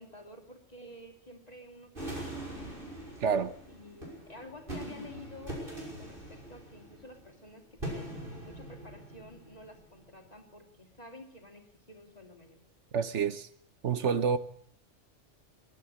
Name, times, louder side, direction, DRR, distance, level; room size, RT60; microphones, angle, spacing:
voice 1, 0.0-2.7 3.7-12.6, left 1 dB, 35° left, 3.1 m, -51 dB
sound 1, 1.9-10.2, right 1 dB, 50° right, 6.2 m, -42 dB
voice 2, 3.2-3.5 12.9-13.5 13.8-14.4, right 6 dB, 80° right, 1.4 m, -28 dB
22.5 x 12.0 x 10.0 m
omnidirectional pair, 1.2 m